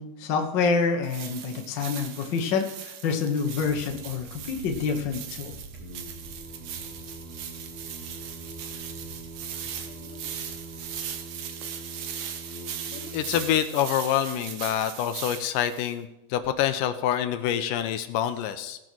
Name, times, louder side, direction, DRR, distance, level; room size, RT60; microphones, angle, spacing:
voice 1, 0.0-5.6 10.0-10.2 12.9-13.1, left 5 dB, 65° left, 3 dB, 1.1 m, -27 dB
sound 1, 1.0-15.9, right 9 dB, 85° right, 1.3 m, -39 dB
sound 2, 3.5-11.2, right 2 dB, 55° right, 2.2 m, -48 dB
Singing, 5.7-13.6, right 1 dB, 5° left, 1.1 m, -43 dB
voice 2, 13.1-18.8, left 10 dB, 85° left, 10 dB, 2.2 m, -26 dB
18.0 x 6.1 x 4.5 m, 0.88 s
omnidirectional pair, 3.9 m